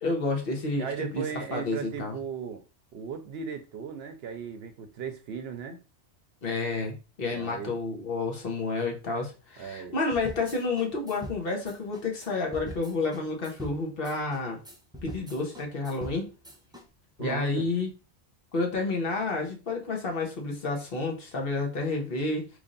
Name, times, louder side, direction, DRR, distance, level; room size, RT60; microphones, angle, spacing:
voice 1, 0.0-2.2 6.4-14.6 15.0-16.3 17.2-17.9 18.5-22.5, left 3 dB, 55° left, 1.1 m, -30 dB
voice 2, 0.8-2.6 2.9-5.8 7.3-7.7 9.6-9.9 17.2-17.7, right 7 dB, 70° right, 0.8 m, -37 dB
sound 1, 10.1-16.8, equal, 5° right, 0.5 m, -43 dB
3.2 x 2.6 x 3.7 m
omnidirectional pair, 1.2 m